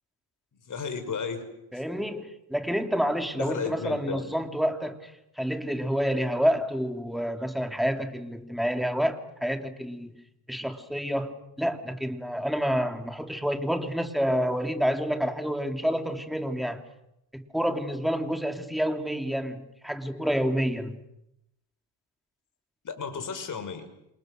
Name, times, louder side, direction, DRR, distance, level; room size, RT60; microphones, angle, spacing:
voice 1, 0.7-1.5 3.3-4.2 22.8-23.9, left 5 dB, 40° left, 5.7 m, -33 dB
voice 2, 1.7-5.1 5.4-10.2 10.5-16.8 17.3-21.0, equal, ahead, 2.9 m, -28 dB
28.5 x 27.0 x 6.6 m
cardioid pair, 100°, 46 cm